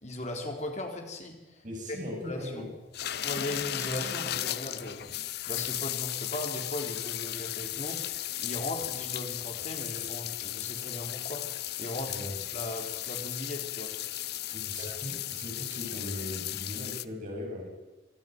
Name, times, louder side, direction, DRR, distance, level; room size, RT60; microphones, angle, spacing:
voice 1, 0.0-1.6 1.9-2.6 3.2-5.1 5.5-8.0 8.4-11.5 11.8-12.1 12.5-14.0 14.8-15.0, left 1 dB, 40° left, 3 dB, 3.8 m, -38 dB
voice 2, 1.6-2.7 12.1-12.4 14.5-17.7, left 1 dB, 40° right, -1 dB, 7.3 m, -39 dB
sound 1, 2.9-17.0, left 13 dB, 55° left, 0.7 m, -35 dB
26.0 x 12.5 x 9.4 m, 1.1 s
head